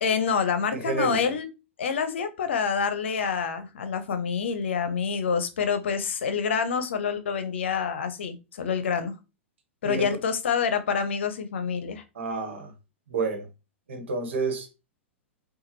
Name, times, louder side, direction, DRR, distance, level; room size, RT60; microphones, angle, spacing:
voice 1, 0.0-1.4 1.8-9.1 9.8-12.0, left 6 dB, 65° left, 0.7 m, -27 dB
voice 2, 0.7-1.2 9.8-10.2 12.1-12.7 13.1-13.5 13.9-14.7, right 3 dB, 65° right, 1.3 m, -29 dB
5.7 x 2.4 x 2.9 m
figure-of-eight pair, 100°, 7 cm